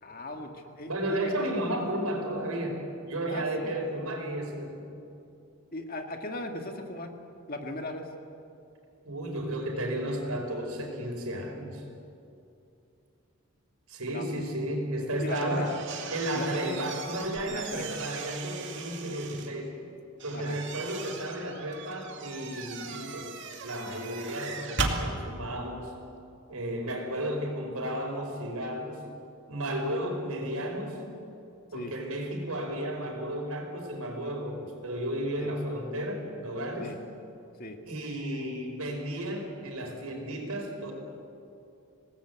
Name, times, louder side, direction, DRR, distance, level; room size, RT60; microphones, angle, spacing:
voice 1, 0.0-1.5 3.3-3.8 5.7-7.1 7.5-8.1 14.1-14.8 15.2-15.8 16.3-16.9 17.5-18.0 20.3-20.6 31.7-31.9 35.4-35.5 36.8-37.0 37.6-37.8, left 1 dB, 40° left, 4 dB, 2.1 m, -38 dB
voice 2, 0.9-5.0 9.1-11.8 13.9-15.7 16.1-19.7 20.2-23.3 23.6-25.9 26.5-29.0 29.5-31.0 31.7-36.9 37.8-40.9, right 1 dB, 90° right, 2 dB, 5.2 m, -33 dB
sound 1, 15.2-19.5 20.2-25.0, right 4 dB, 55° right, 2.5 m, -38 dB
26.5 x 19.0 x 8.3 m, 2.6 s
head